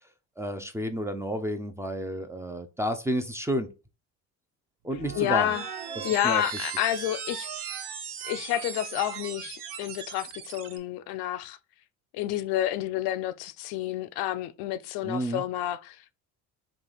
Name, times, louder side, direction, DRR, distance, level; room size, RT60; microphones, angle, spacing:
voice 1, 0.4-3.7 4.8-5.5 6.0-6.4 15.0-15.4, equal, 5° right, 0.4 m, -31 dB
sound 1, 4.9-10.8, right 7 dB, 65° right, 0.8 m, -38 dB
voice 2, 5.1-5.6 6.0-7.5 8.2-11.6 12.1-16.1, left 13 dB, 70° left, 0.5 m, -29 dB
3.4 x 2.3 x 3.8 m
supercardioid pair, 85°, 39 cm